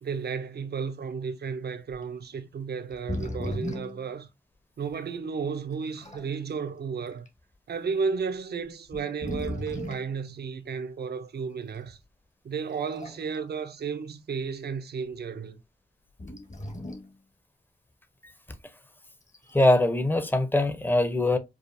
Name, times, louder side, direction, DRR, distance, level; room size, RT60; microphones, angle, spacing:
voice 1, 0.0-4.3 4.8-7.3 7.7-12.0 12.4-15.6, right 5 dB, 70° right, 0.6 m, -33 dB
sound 1, 2.0-2.1 2.9-4.0 4.9-5.0 5.7-6.3 7.1-7.3 8.2-8.3 8.8-10.1 11.8-11.9 12.7-13.4 13.8-13.9 16.2-17.1 19.2-19.7, left 1 dB, 45° left, 1.4 m, -36 dB
voice 2, 19.5-21.4, left 1 dB, 10° left, 0.7 m, -22 dB
4.8 x 2.4 x 2.6 m
wide cardioid pair, 80°, 17 cm